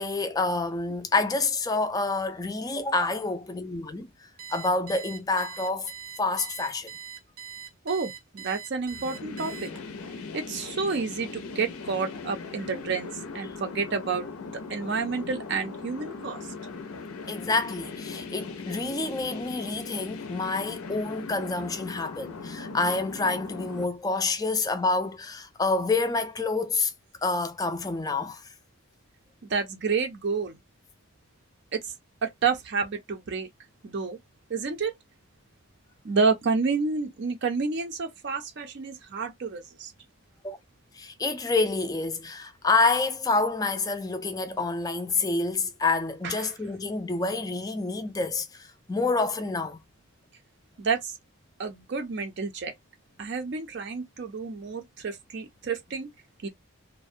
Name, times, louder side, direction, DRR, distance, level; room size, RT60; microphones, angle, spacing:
voice 1, 0.0-4.1 4.5-5.9 6.2-6.9 17.3-26.9 27.2-28.4 40.4-40.6 40.9-49.8, left 3 dB, 15° left, 0.3 m, -28 dB
Alarm, 4.4-10.0, right 8 dB, 85° right, 0.7 m, -42 dB
voice 2, 7.8-9.7 10.3-14.3 14.5-16.5 29.5-30.6 31.7-31.9 32.2-33.5 33.8-34.2 34.5-34.9 36.0-39.9 46.2-46.5 50.8-51.2 51.6-52.7 53.2-56.1 56.4-56.5, right 4 dB, 50° right, 0.4 m, -29 dB
sound 1, 8.9-23.8, left 4 dB, 80° left, 0.5 m, -39 dB
2.4 x 2.0 x 2.6 m
head